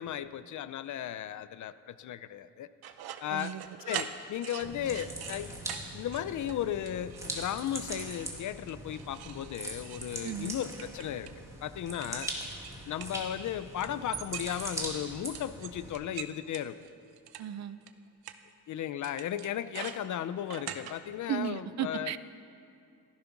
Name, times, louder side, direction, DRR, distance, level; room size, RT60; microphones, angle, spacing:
voice 1, 0.0-2.7 3.2-3.5 3.9-5.6 5.9-11.3 11.6-12.3 12.9-16.8 18.7-22.1, left 10 dB, 55° left, 14 dB, 0.6 m, -35 dB
sound 1, 2.8-5.4 5.7-5.8 6.1-6.6 6.9-7.5 7.8-8.3 8.7-11.4 11.9-13.5 13.8-14.9 15.3-17.4 17.9-18.0 18.2-18.4 19.0-20.9, right 10 dB, 85° right, 0.9 m, -42 dB
voice 2, 3.3-3.6 10.2-10.5 17.4-17.8 21.3-22.2, right 10 dB, 45° right, 14 dB, 0.5 m, -35 dB
sound 2, 4.6-15.9, right 1 dB, 10° right, 1.9 m, -41 dB
16.0 x 14.0 x 6.0 m, 2.5 s
cardioid pair, 170°, 37 cm